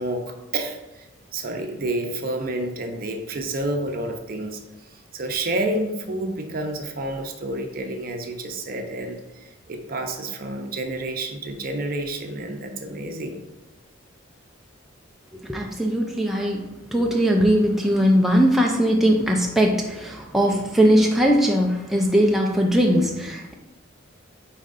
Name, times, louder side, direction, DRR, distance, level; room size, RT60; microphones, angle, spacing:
voice 1, 0.0-13.4, right 2 dB, 45° right, 4 dB, 0.7 m, -29 dB
voice 2, 15.4-23.5, equal, ahead, 0 dB, 0.5 m, -20 dB
8.9 x 4.1 x 2.6 m, 1.0 s
head